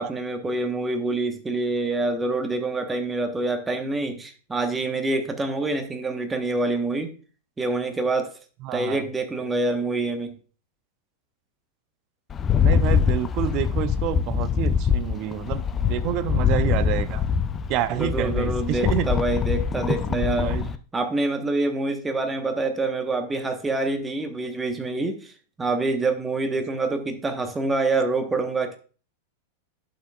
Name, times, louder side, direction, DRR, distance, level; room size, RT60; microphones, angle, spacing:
voice 1, 0.0-7.1 7.6-8.3 8.7-10.3 17.9-20.5 20.9-25.3 25.6-28.8, right 2 dB, 15° right, 6 dB, 1.2 m, -26 dB
voice 2, 8.6-9.0 12.6-17.2 17.7-19.1 19.9-20.7, right 12 dB, 45° right, 14 dB, 0.7 m, -28 dB
Rattle, 12.3-20.8, left 7 dB, 25° left, 0.5 m, -24 dB
11.0 x 5.9 x 2.4 m, 0.38 s
figure-of-eight pair, 95°, 0 cm